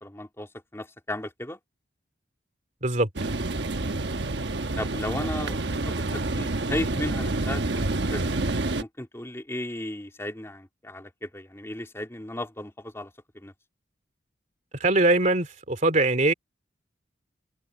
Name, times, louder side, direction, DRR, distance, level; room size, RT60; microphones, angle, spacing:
voice 1, 0.0-1.6 4.8-8.2 8.8-13.5, left 1 dB, 15° left, 2.9 m, -35 dB
sound 1, 3.2-8.8, right 2 dB, 70° right, 1.1 m, -28 dB
voice 2, 14.8-16.3, right 2 dB, 45° right, 3.1 m, -22 dB
open air
head